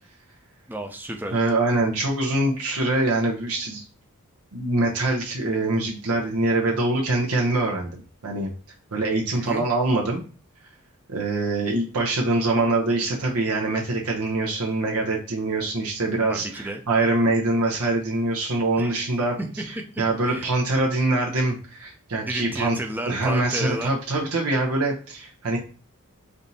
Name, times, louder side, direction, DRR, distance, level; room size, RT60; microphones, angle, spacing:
voice 1, 0.7-1.3 9.3-9.7 16.3-16.8 18.8-19.1 19.4-19.6 19.9-20.5 22.2-23.9, right 1 dB, 10° right, 5 dB, 0.5 m, -32 dB
voice 2, 1.3-3.8 4.5-8.5 8.9-10.2 11.1-22.8 23.1-25.6, right 2 dB, 80° right, -1 dB, 0.8 m, -24 dB
3.4 x 2.7 x 4.0 m, 0.39 s
head